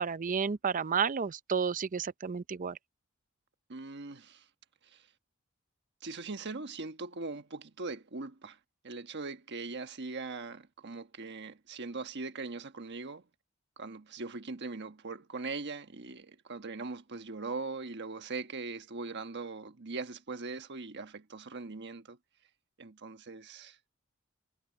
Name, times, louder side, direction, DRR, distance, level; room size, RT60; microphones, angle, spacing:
voice 1, 0.0-2.8, right 6 dB, 40° right, 0.5 m, -31 dB
voice 2, 3.7-4.4 6.0-8.6 8.8-13.2 13.8-22.2 22.8-23.8, right 3 dB, 55° right, 1.3 m, -40 dB
head